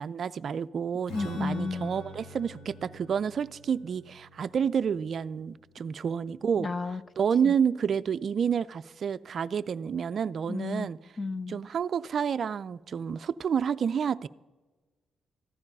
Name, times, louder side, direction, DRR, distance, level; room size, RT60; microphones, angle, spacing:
voice 1, 0.0-6.7 7.2-11.0 11.5-14.3, right 7 dB, 55° right, 15 dB, 0.4 m, -29 dB
Strum, 1.1-6.7, left 2 dB, 85° left, 3.0 m, -47 dB
voice 2, 1.1-1.9 6.6-7.0 7.4-7.5 10.5-10.9 11.2-11.6, left 3 dB, 35° left, 15 dB, 0.7 m, -32 dB
15.0 x 10.5 x 5.4 m, 1.2 s
cardioid pair, 70°, 0 cm